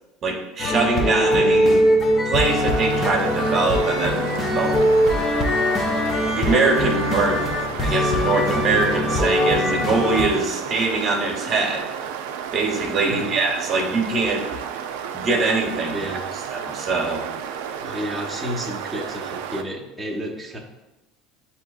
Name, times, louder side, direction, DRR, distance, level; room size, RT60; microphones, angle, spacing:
voice 1, 0.2-1.8 2.3-4.9 6.3-7.4 7.8-11.8 12.5-14.5 15.1-16.0 16.5-17.2, right 3 dB, 45° right, 0 dB, 0.9 m, -23 dB
sound 1, 0.6-10.3, left 1 dB, 30° left, 0.7 m, -21 dB
sound 2, 2.4-19.6, right 8 dB, 80° right, 0.3 m, -32 dB
voice 2, 15.9-16.3 17.8-20.6, equal, 5° right, -4 dB, 0.8 m, -31 dB
7.4 x 2.8 x 2.3 m, 1.0 s
supercardioid pair, 95°, 0 cm